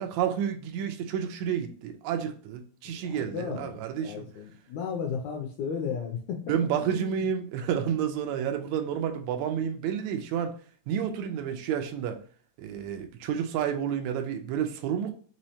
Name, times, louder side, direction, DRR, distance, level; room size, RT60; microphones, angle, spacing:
voice 1, 0.0-4.2 6.5-10.5 10.9-12.2 12.6-15.1, right 8 dB, 80° right, 5 dB, 1.7 m, -30 dB
voice 2, 2.8-7.3, left 6 dB, 80° left, 3 dB, 1.6 m, -35 dB
5.4 x 3.1 x 2.8 m, 0.43 s
omnidirectional pair, 3.9 m